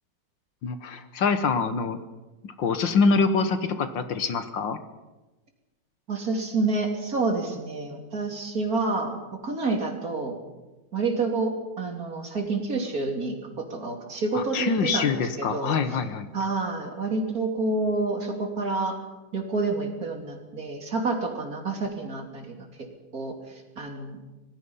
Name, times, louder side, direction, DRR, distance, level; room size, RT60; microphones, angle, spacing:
voice 1, 0.6-2.0 2.4-4.8 14.3-16.3, left 4 dB, 65° left, 10 dB, 1.8 m, -25 dB
voice 2, 6.1-10.4 10.9-15.8 16.3-19.0 19.3-22.6 23.1-23.3 23.8-24.2, right 3 dB, 45° right, 3 dB, 3.2 m, -28 dB
25.5 x 19.5 x 5.6 m, 1.1 s
omnidirectional pair, 2.2 m